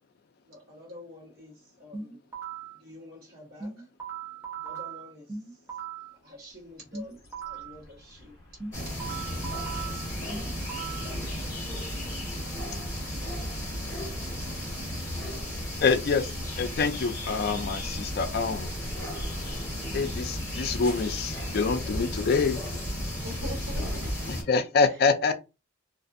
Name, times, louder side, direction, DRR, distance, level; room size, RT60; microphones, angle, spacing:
voice 1, 0.4-2.3 2.7-3.9 4.6-8.9 9.3-10.3 11.4-11.9, left 2 dB, 45° right, 1.1 m, -50 dB
sound 1, 1.9-2.8 3.6-6.1 6.9-7.8 8.6-11.1, right 6 dB, 10° right, 0.6 m, -38 dB
sound 2, 6.5-24.3, equal, 30° left, 1.2 m, -44 dB
sound 3, 8.7-24.4, left 1 dB, 15° left, 1.3 m, -34 dB
voice 2, 15.8-16.3 16.6-18.7 19.9-22.6 24.3-25.3, left 5 dB, 45° left, 0.3 m, -26 dB
voice 3, 23.2-24.4 24.8-25.3, left 1 dB, 80° right, 1.1 m, -42 dB
2.5 x 2.4 x 2.5 m
head